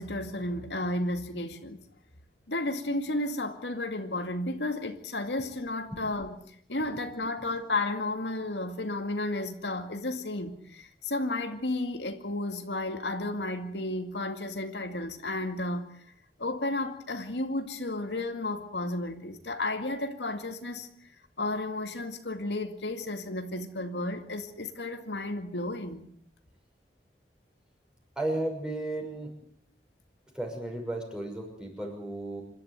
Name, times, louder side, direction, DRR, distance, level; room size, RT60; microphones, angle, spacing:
voice 1, 0.0-1.8 2.5-15.9 16.4-20.9 21.4-26.1, left 2 dB, 85° left, 6 dB, 2.3 m, -33 dB
voice 2, 28.2-29.3 30.3-32.4, right 1 dB, 5° right, 0 dB, 6.1 m, -34 dB
27.0 x 12.5 x 9.3 m, 0.65 s
head